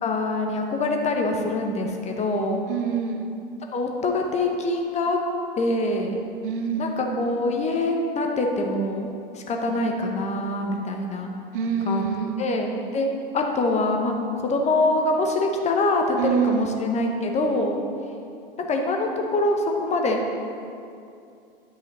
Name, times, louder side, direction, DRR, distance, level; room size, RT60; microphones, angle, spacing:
voice 1, 0.0-2.6 3.7-5.2 5.6-6.2 6.8-9.1 9.3-11.3 11.9-17.8 18.7-20.2, left 2 dB, 25° left, 2 dB, 1.0 m, -24 dB
voice 2, 2.7-3.3 6.4-7.0 11.5-12.4 16.2-16.7, right 7 dB, 60° right, 6 dB, 0.8 m, -26 dB
11.5 x 5.2 x 4.0 m, 2.5 s
hypercardioid pair, 95°, 29 cm